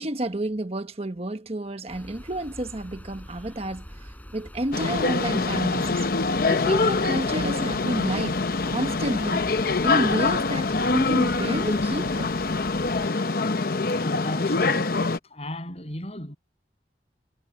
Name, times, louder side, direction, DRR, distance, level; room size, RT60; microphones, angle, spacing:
voice 1, 0.0-3.9 4.3-6.0 6.5-8.4 8.7-9.5 9.8-12.4, right 1 dB, 35° right, 1.2 m, -30 dB
sound 1, 1.9-13.1, equal, 10° left, 7.8 m, -44 dB
sound 2, 4.7-15.2, left 3 dB, 55° left, 0.8 m, -24 dB
voice 2, 13.9-15.0 15.3-16.4, left 1 dB, 35° left, 7.5 m, -35 dB
head